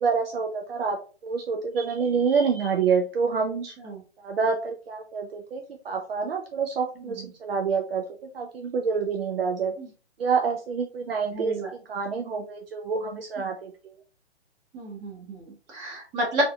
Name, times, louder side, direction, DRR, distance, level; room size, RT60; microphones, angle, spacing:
voice 1, 0.0-1.0 1.2-3.7 4.2-8.0 8.3-9.7 10.2-13.9, right 5 dB, 55° right, 2 dB, 0.7 m, -27 dB
voice 2, 11.3-11.7 14.7-16.4, right 1 dB, 20° right, -2 dB, 1.4 m, -31 dB
3.8 x 3.7 x 2.4 m, 0.37 s
figure-of-eight pair, 130°, 35 cm